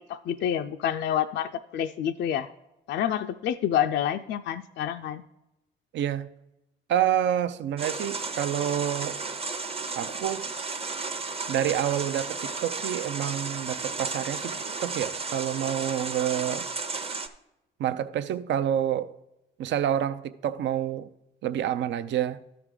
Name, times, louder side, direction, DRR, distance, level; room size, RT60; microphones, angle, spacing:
voice 1, 0.1-2.5 2.9-5.2, left 10 dB, 65° left, 0.4 m, -28 dB
voice 2, 5.9-6.3 6.9-9.2 10.0-10.5 11.5-16.7 17.8-19.1 19.6-21.1 21.4-22.4, right 10 dB, 65° right, 0.5 m, -28 dB
sound 1, 7.8-17.3, right 4 dB, 30° right, 0.7 m, -33 dB
13.0 x 4.7 x 3.8 m
cardioid pair, 90°, 20 cm